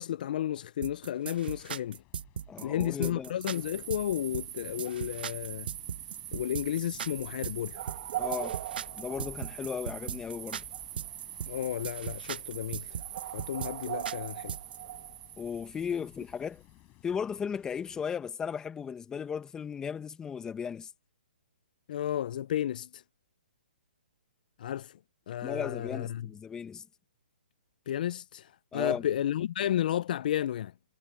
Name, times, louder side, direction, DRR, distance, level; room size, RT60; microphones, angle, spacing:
voice 1, 0.0-2.0 2.6-5.7 6.3-7.8 11.5-13.0 13.3-14.6 21.9-23.0 24.6-25.0 25.3-26.3 27.9-30.7, left 11 dB, 55° left, 0.6 m, -32 dB
sound 1, 0.8-14.8, right 8 dB, 65° right, 0.7 m, -38 dB
sound 2, 1.3-18.0, left 22 dB, 25° left, 4.6 m, -57 dB
voice 2, 2.5-3.3 8.1-8.6 9.0-10.6 15.4-16.6 17.0-20.9 25.4-26.9 28.7-29.0, left 7 dB, 10° left, 1.6 m, -35 dB
sound 3, 3.5-16.3, right 14 dB, 45° right, 1.8 m, -41 dB
hypercardioid pair, 145°, 6 cm